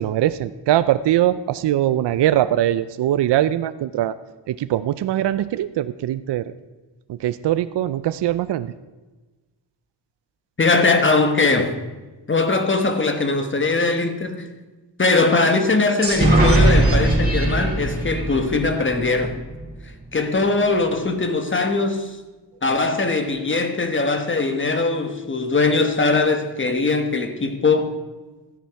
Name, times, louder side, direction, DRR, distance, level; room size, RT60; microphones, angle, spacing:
voice 1, 0.0-4.2 4.5-6.5 7.1-8.7, right 12 dB, 65° right, 0.5 m, -21 dB
voice 2, 10.6-11.8 12.3-14.5 15.0-19.3 20.1-22.2 22.6-28.0, left 3 dB, 25° left, 1.2 m, -20 dB
Annulet of hell, 16.0-19.7, right 1 dB, 20° right, 3.5 m, -19 dB
13.5 x 10.0 x 4.7 m
wide cardioid pair, 130°, 44 cm